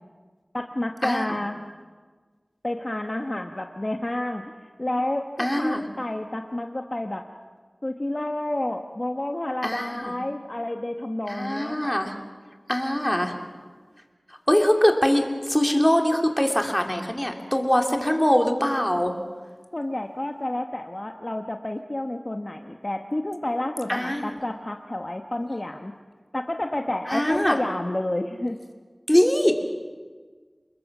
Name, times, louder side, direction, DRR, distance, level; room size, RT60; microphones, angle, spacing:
voice 1, 0.5-1.6 2.6-4.4 4.8-7.3 7.8-11.9 19.7-25.9 26.3-28.6, left 1 dB, 40° left, 4 dB, 1.2 m, -30 dB
voice 2, 5.4-5.9 9.6-10.1 11.3-12.1 12.7-13.3 14.5-19.1 23.9-24.4 27.1-27.6 29.1-29.6, equal, 15° left, 3 dB, 2.7 m, -22 dB
28.5 x 21.0 x 6.1 m, 1.5 s
wide cardioid pair, 40°, 0 cm